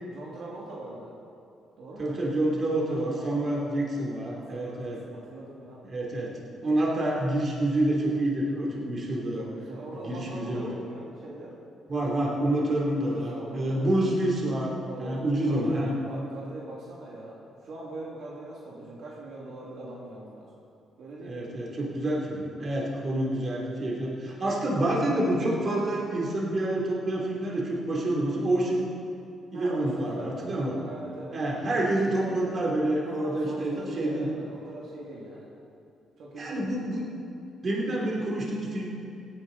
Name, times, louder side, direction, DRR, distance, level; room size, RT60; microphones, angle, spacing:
voice 1, 0.1-1.1 1.8-2.2 2.9-3.8 4.3-5.8 9.4-11.6 12.0-13.9 14.9-15.8 16.0-20.5 21.0-21.5 29.5-31.4 33.1-35.5 36.2-36.7, right 2 dB, 70° right, -5 dB, 2.4 m, -42 dB
voice 2, 2.0-5.0 5.9-6.3 6.6-9.5 10.0-10.7 11.9-14.7 15.0-15.9 21.2-28.8 29.5-30.8 31.3-34.3 36.3-37.0 37.6-38.9, right 1 dB, 45° right, -3 dB, 3.1 m, -28 dB
17.0 x 9.8 x 4.1 m, 2.5 s
cardioid pair, 90°, 0 cm